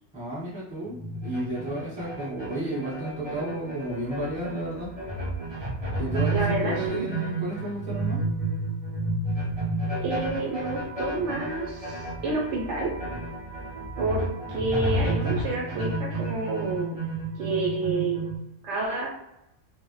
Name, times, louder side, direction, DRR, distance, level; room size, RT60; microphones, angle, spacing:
voice 1, 0.1-4.9 5.9-8.2, right 1 dB, 5° right, -7 dB, 1.0 m, -32 dB
sound 1, 0.8-18.4, right 2 dB, 45° right, 0.4 m, -31 dB
voice 2, 6.3-7.1 10.0-12.9 14.0-17.0 17.3-18.3 18.6-19.1, right 3 dB, 70° right, -2 dB, 0.9 m, -29 dB
2.1 x 2.0 x 2.9 m, 0.84 s
omnidirectional pair, 1.3 m